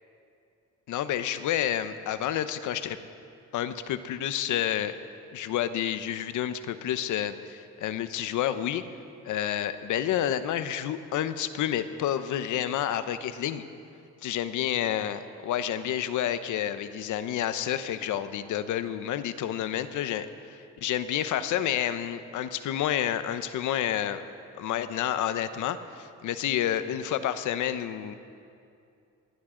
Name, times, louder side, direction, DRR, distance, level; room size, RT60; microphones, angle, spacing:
voice 1, 0.9-3.0 3.5-5.0 5.3-8.8 9.2-13.6 14.2-24.2 24.6-28.1, left 10 dB, 80° left, 12 dB, 0.8 m, -29 dB
21.5 x 16.0 x 3.8 m, 2.5 s
cardioid pair, 90°, 30 cm